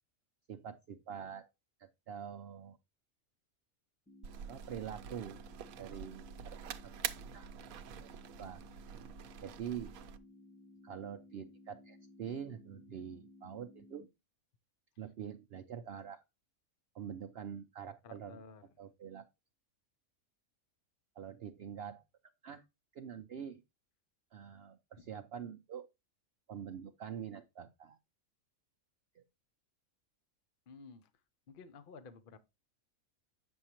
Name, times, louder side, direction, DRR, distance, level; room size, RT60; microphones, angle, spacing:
voice 1, 0.5-1.5 1.8-2.8 4.5-5.4 5.8-6.9 7.3-7.5 8.0-8.1 8.4-8.6 9.4-10.0 10.8-14.1 15.0-16.2 16.9-18.4 18.8-19.2 21.2-22.0 22.4-22.6 22.9-23.6 24.3-25.9 26.5-28.0 29.1-29.2, right 8 dB, 60° right, 0.6 m, -45 dB
sound 1, 4.1-14.1, left 2 dB, 15° left, 0.4 m, -58 dB
sound 2, 4.2-10.2, right 9 dB, 85° right, 1.1 m, -46 dB
voice 2, 18.0-18.7 30.7-31.1 31.5-32.4, left 4 dB, 50° left, 0.7 m, -53 dB
8.6 x 6.3 x 2.9 m
omnidirectional pair, 1.4 m